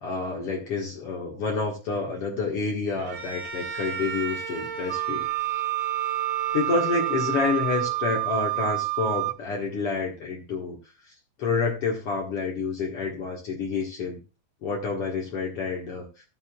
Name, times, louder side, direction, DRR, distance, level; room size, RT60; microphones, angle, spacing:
voice 1, 0.0-5.3 6.5-10.8 11.4-14.2 14.6-16.1, left 4 dB, 80° left, -2 dB, 1.3 m, -28 dB
Bowed string instrument, 3.0-8.2, right 6 dB, 60° right, 1.5 m, -35 dB
Wind instrument woodwind instrument, 4.9-9.4, right 20 dB, 85° right, 2.8 m, -28 dB
15.0 x 6.7 x 2.3 m, 0.30 s
omnidirectional pair, 5.2 m